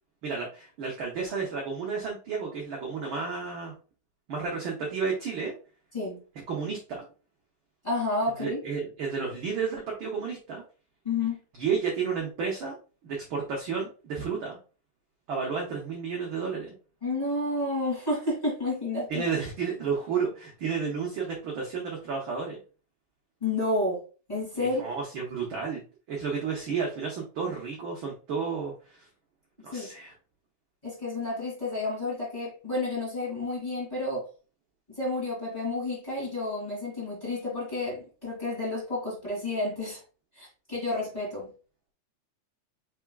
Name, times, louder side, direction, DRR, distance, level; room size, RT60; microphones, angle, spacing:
voice 1, 0.2-3.7 4.3-5.5 6.5-7.0 8.4-10.6 11.6-12.8 13.0-14.6 15.3-16.7 19.1-22.6 24.6-25.8 26.1-29.1 29.6-30.1, right 5 dB, 70° right, -1 dB, 1.2 m, -32 dB
voice 2, 7.8-8.6 11.0-11.4 17.0-19.2 23.4-24.0 24.3-24.8 29.7-29.9 30.8-34.2 34.9-40.0 40.3-41.5, left 2 dB, 15° left, -6 dB, 2.2 m, -30 dB
4.6 x 4.2 x 2.3 m, 0.36 s
omnidirectional pair, 3.4 m